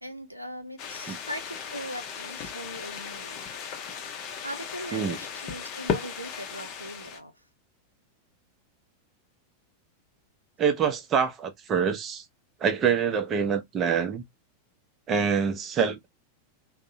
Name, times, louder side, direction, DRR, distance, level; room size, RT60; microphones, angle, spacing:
voice 1, 0.0-3.5 4.4-7.3, equal, 85° right, 0.5 m, -40 dB
sound 1, 0.8-7.2, left 7 dB, 40° left, 0.6 m, -36 dB
voice 2, 10.6-12.2 12.6-14.2 15.1-16.1, right 6 dB, 30° right, 0.5 m, -25 dB
2.6 x 2.0 x 2.5 m
figure-of-eight pair, 90°, 0 cm